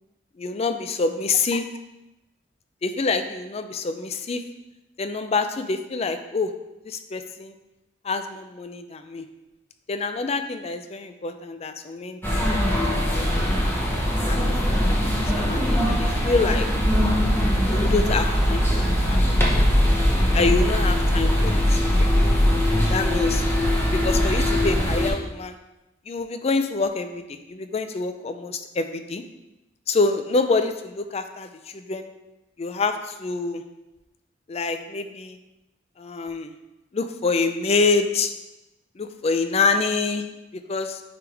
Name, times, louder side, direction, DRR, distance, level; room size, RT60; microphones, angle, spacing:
voice 1, 0.4-1.6 2.8-4.4 5.0-6.5 6.8-7.5 8.0-9.2 9.9-12.8 13.1-13.7 14.3-15.0 15.3-16.7 17.7-18.8 19.1-19.4 20.3-22.1 22.9-23.4 23.9-25.6 26.1-29.2 29.9-32.1 32.6-33.6 34.5-35.4 36.0-36.5 36.9-38.3 39.0-40.2 40.5-41.0, left 4 dB, 35° left, 8 dB, 0.4 m, -26 dB
sound 1, 12.2-25.1, equal, 10° left, 1.0 m, -21 dB
9.4 x 3.5 x 3.3 m, 0.99 s
head